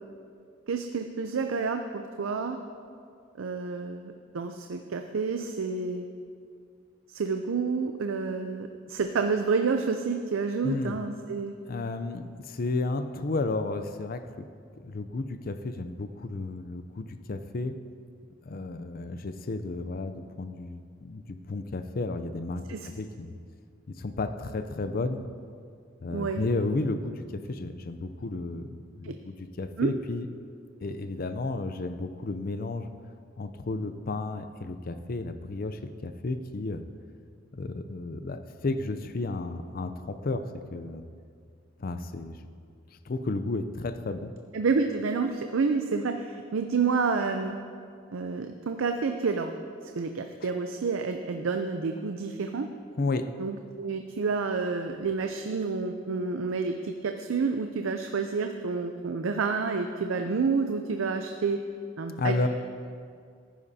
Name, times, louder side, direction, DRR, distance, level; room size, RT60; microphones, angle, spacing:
voice 1, 0.7-2.6 3.4-6.0 7.1-11.5 22.7-22.9 26.1-26.4 29.0-29.1 29.8-29.9 44.5-47.6 48.1-49.5 49.8-52.7 53.4-61.6 62.0-62.5, right 4 dB, 85° right, 6 dB, 0.5 m, -29 dB
voice 2, 10.6-11.0 11.7-14.4 14.8-17.8 18.4-22.7 23.0-23.4 24.0-25.2 26.0-30.3 30.8-32.9 33.4-36.8 37.5-40.4 40.7-41.1 41.8-42.4 43.1-44.3 53.0-53.3 62.2-62.5, left 3 dB, 50° left, 10 dB, 0.5 m, -32 dB
15.0 x 10.0 x 2.8 m, 2.2 s
head